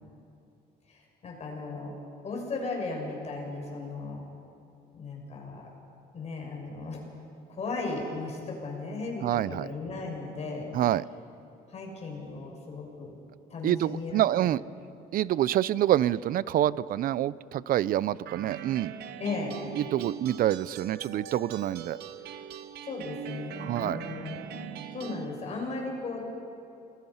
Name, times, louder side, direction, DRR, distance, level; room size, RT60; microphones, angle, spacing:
voice 1, 0.9-1.9 2.2-4.2 4.9-5.7 6.1-7.0 7.5-10.7 11.7-13.1 13.5-14.5 19.2-19.6 22.8-24.7 24.9-26.2, left 3 dB, 40° left, 0 dB, 6.6 m, -36 dB
voice 2, 9.2-9.7 10.7-11.0 13.6-14.6 15.1-18.9 19.8-22.0 23.6-24.0, right 12 dB, 60° right, 20 dB, 0.5 m, -27 dB
sound 1, 18.3-25.3, right 8 dB, 75° right, 1.2 m, -41 dB
27.0 x 20.0 x 5.7 m, 2.6 s
cardioid pair, 110°, 17 cm